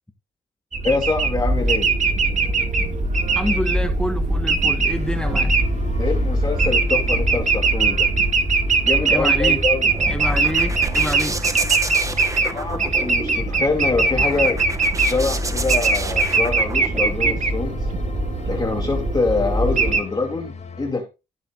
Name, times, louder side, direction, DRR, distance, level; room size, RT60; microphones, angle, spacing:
sound 1, 0.7-20.0, right 3 dB, 40° right, 2.2 m, -21 dB
voice 1, 0.8-1.9 6.0-8.1 8.8-9.9 12.4-14.6 15.0-17.9 18.4-21.0, left 3 dB, 20° left, 2.7 m, -25 dB
voice 2, 3.3-5.6 9.1-9.6 10.1-11.4, left 1 dB, 5° left, 1.3 m, -27 dB
sound 2, 4.9-20.9, left 5 dB, 35° left, 3.8 m, -38 dB
sound 3, 9.6-17.4, right 2 dB, 15° right, 1.2 m, -31 dB
15.5 x 7.5 x 2.5 m
cardioid pair, 90°, 20 cm